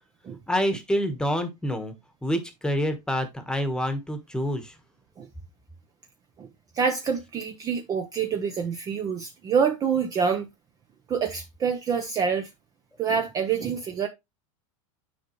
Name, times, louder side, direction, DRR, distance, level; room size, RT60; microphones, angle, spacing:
voice 1, 0.5-1.9 2.2-4.7, equal, 5° left, 1.2 m, -27 dB
voice 2, 6.7-10.5 11.1-12.5 13.0-14.1, right 6 dB, 20° right, 0.7 m, -26 dB
9.6 x 4.7 x 3.1 m
supercardioid pair, 150°, 17 cm